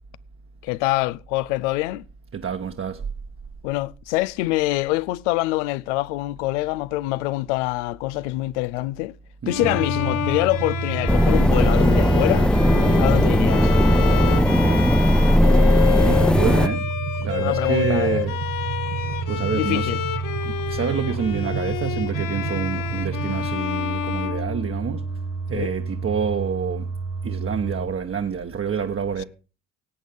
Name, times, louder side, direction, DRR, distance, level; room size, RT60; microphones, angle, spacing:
voice 1, 0.6-2.1 3.6-9.1 9.5-12.5 13.0-13.7 17.4-18.2 19.5-20.0 25.5-25.7, left 19 dB, 90° left, 0.6 m, -25 dB
voice 2, 2.3-3.1 9.4-9.7 12.7-13.1 14.6-14.9 16.0-16.9 17.2-18.4 19.3-19.9 20.4-25.1 25.5-26.9 27.2-29.2, right 7 dB, 40° right, 1.3 m, -28 dB
Bowed string instrument, 9.5-25.2, left 12 dB, 65° left, 1.4 m, -29 dB
sound 1, 9.6-27.9, right 5 dB, 80° right, 1.6 m, -29 dB
sound 2, 11.1-16.7, equal, 5° left, 0.6 m, -17 dB
17.5 x 8.5 x 5.2 m
hypercardioid pair, 65°, 34 cm